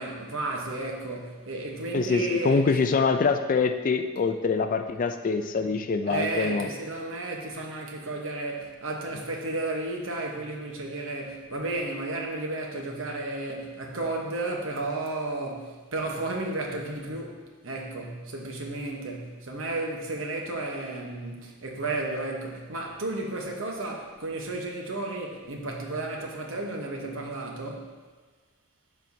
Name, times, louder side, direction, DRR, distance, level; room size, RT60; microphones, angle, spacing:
voice 1, 0.0-2.6 3.0-3.1 6.1-17.4 17.6-27.9, right 2 dB, 70° right, 1 dB, 1.0 m, -33 dB
voice 2, 1.9-6.7, left 4 dB, 40° left, 7 dB, 0.4 m, -25 dB
11.5 x 4.5 x 2.7 m, 1.4 s
head